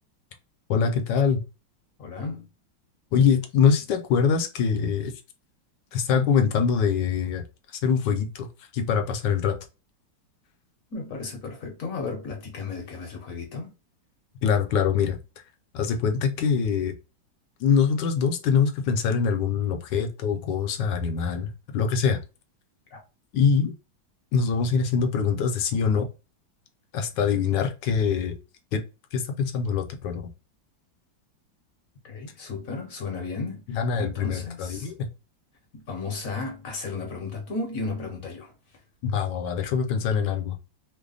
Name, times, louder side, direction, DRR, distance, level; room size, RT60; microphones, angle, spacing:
voice 1, 0.7-1.4 3.1-5.1 5.9-7.4 7.8-8.5 8.7-9.6 14.4-15.2 15.7-16.9 17.6-22.2 23.3-23.7 24.3-26.1 26.9-28.4 28.7-28.8 29.1-30.2 33.7-35.1 39.0-40.6, left 6 dB, 70° left, 1.2 m, -24 dB
voice 2, 2.0-2.5 10.9-13.7 22.9-23.0 32.0-34.9 35.7-38.5, left 4 dB, 55° left, 1.1 m, -34 dB
3.3 x 2.1 x 3.8 m
omnidirectional pair, 2.1 m